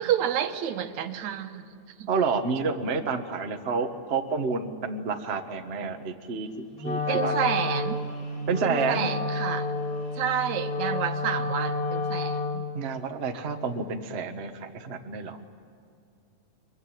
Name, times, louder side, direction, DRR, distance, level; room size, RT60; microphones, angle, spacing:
voice 1, 0.0-1.6 2.0-2.1 7.1-8.0 8.6-9.7 10.2-12.6, right 9 dB, 75° right, 8 dB, 2.4 m, -29 dB
voice 2, 2.1-6.5 6.8-7.3 8.5-9.1 12.7-15.4, right 5 dB, 35° right, 5 dB, 1.0 m, -29 dB
Wind instrument woodwind instrument, 6.8-12.8, left 3 dB, 50° left, 4.5 m, -30 dB
23.5 x 22.5 x 9.3 m, 2.4 s
omnidirectional pair, 3.4 m